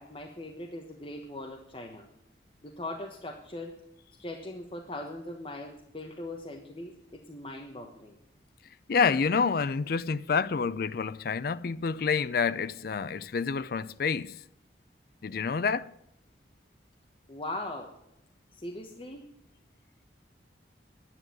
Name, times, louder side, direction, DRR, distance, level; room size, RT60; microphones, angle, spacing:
voice 1, 0.0-2.1 2.6-3.7 4.2-8.2 17.3-17.9 18.5-19.3, left 1 dB, 30° left, 1.2 m, -40 dB
voice 2, 8.9-14.4 15.2-15.9, left 5 dB, 55° left, 0.4 m, -28 dB
10.5 x 9.9 x 7.7 m
head